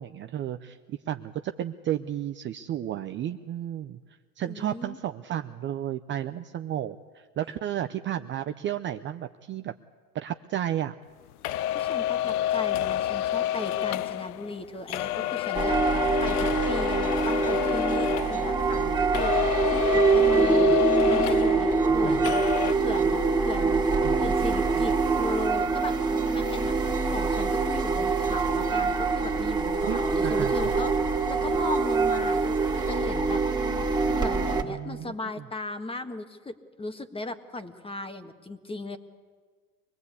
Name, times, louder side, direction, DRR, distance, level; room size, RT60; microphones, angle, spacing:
voice 1, 0.0-4.0 4.4-9.7 10.1-10.9 20.7-20.8 21.8-22.3 24.0-24.3 29.8-30.8 34.6-35.1, right 11 dB, 25° right, 9 dB, 0.6 m, -33 dB
voice 2, 4.4-5.0 11.7-22.4 22.8-23.8 24.2-26.0 26.3-26.8 27.0-33.4 34.0-39.0, left 2 dB, 10° left, 8 dB, 1.5 m, -37 dB
sound 1, 11.4-18.9 19.1-22.0 22.2-22.7, left 12 dB, 70° left, 0.7 m, -28 dB
sound 2, 15.5-34.6, right 4 dB, 10° right, 2.3 m, -24 dB
24.5 x 19.5 x 8.4 m, 1.6 s
hypercardioid pair, 100°, 46 cm